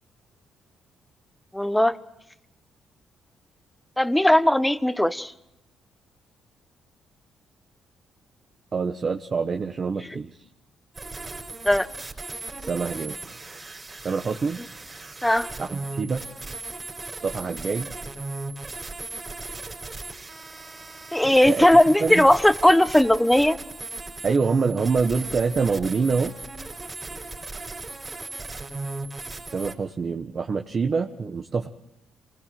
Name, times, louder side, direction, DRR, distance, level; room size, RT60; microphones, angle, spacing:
voice 1, 1.5-2.0 4.0-5.3 10.0-10.2 11.6-11.9 15.2-15.5 21.1-23.6, left 1 dB, 5° left, 14 dB, 1.2 m, -18 dB
voice 2, 8.7-10.3 12.6-13.2 14.0-14.6 15.6-16.2 17.2-17.9 21.5-21.7 22.0-22.3 24.2-26.3 29.5-31.7, right 5 dB, 40° right, 5 dB, 1.4 m, -25 dB
sound 1, 10.9-29.7, right 3 dB, 25° right, 4.5 m, -37 dB
28.0 x 20.0 x 7.8 m, 0.85 s
cardioid pair, 90°, 0 cm